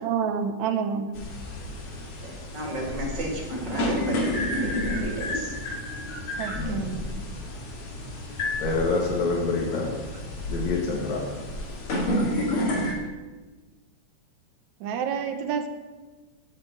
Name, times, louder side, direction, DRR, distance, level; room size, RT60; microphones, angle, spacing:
voice 1, 0.0-1.2 6.4-7.0 14.8-15.7, right 7 dB, 75° right, 7 dB, 2.1 m, -28 dB
sound 1, 1.1-12.9, left 1 dB, 50° left, 2.6 m, -30 dB
voice 2, 2.2-5.5, right 1 dB, 40° right, -1 dB, 3.0 m, -33 dB
voice 3, 6.5-6.9 8.6-9.9 10.5-11.2, left 3 dB, 70° left, -2 dB, 3.0 m, -26 dB
8.4 x 7.3 x 8.3 m, 1.3 s
omnidirectional pair, 3.4 m